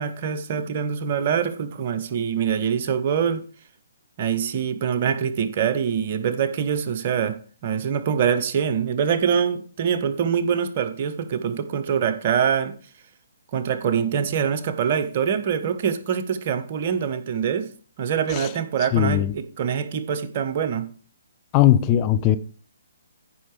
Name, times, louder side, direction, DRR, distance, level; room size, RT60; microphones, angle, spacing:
voice 1, 0.0-3.4 4.2-12.7 13.5-17.7 18.0-20.9, right 7 dB, 40° right, 1.1 m, -24 dB
voice 2, 18.9-19.3 21.5-22.4, left 12 dB, 25° left, 0.5 m, -18 dB
14.5 x 5.7 x 3.3 m
figure-of-eight pair, 130°, 0 cm